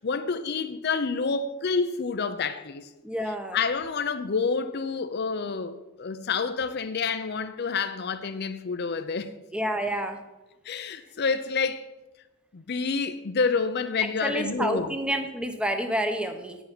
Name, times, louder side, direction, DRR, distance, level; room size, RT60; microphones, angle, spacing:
voice 1, 0.0-2.9 3.3-9.3 10.6-11.9 12.5-14.9, left 5 dB, 50° left, 0.6 m, -28 dB
voice 2, 3.0-3.6 9.5-10.2 14.2-16.6, equal, 5° right, 0.9 m, -28 dB
10.0 x 7.1 x 6.0 m
head